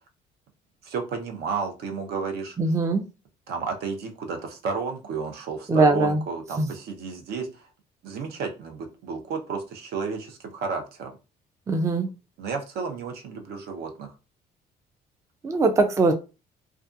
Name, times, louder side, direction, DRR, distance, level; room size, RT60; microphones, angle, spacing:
voice 1, 0.8-2.6 3.5-7.6 8.0-11.1 12.4-14.1, right 5 dB, 70° right, 0.7 m, -32 dB
voice 2, 2.6-3.0 5.7-6.2 6.6-6.7 11.7-12.1 15.4-16.1, right 3 dB, 20° right, 0.4 m, -21 dB
2.4 x 2.3 x 2.5 m
cardioid pair, 110°, 17 cm